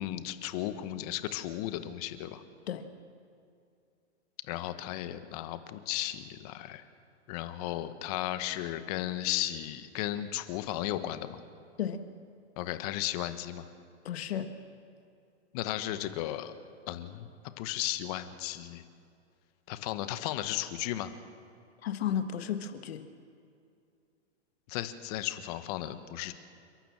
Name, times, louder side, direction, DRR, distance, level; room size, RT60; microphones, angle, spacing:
voice 1, 0.0-2.4 4.5-6.8 7.3-11.4 12.6-13.7 15.5-16.5 16.9-17.3 17.6-18.8 19.7-21.1 24.7-26.3, left 13 dB, 35° left, 11 dB, 1.2 m, -35 dB
voice 2, 14.0-14.5 21.8-23.0, left 9 dB, 60° left, 9 dB, 1.6 m, -33 dB
29.0 x 12.0 x 7.4 m, 2.4 s
hypercardioid pair, 145°, 36 cm